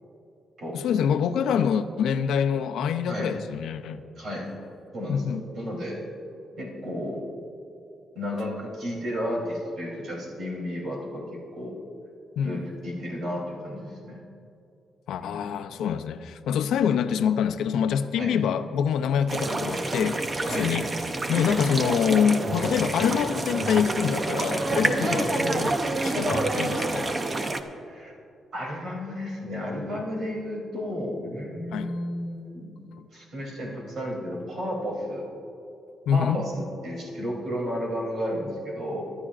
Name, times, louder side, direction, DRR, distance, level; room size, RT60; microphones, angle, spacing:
voice 1, 0.7-4.0 5.1-5.4 12.4-12.7 15.1-20.2 20.5-20.8 21.3-25.8 26.0-27.1 31.7-31.9 36.1-36.4, left 8 dB, 90° left, 9 dB, 0.5 m, -25 dB
voice 2, 4.2-4.5 4.9-6.0 6.6-7.2 8.1-11.8 12.4-14.2 15.2-15.4 16.5-16.8 18.1-18.4 20.4-20.7 21.3-21.5 25.0-25.2 27.8-28.1 28.5-32.7 33.1-35.2 36.1-39.1, equal, 50° right, -2 dB, 3.1 m, -33 dB
sound 1, 19.3-27.6, right 2 dB, 20° right, 0.6 m, -27 dB
24.0 x 11.0 x 2.5 m, 2.8 s
cardioid pair, 170°, 0 cm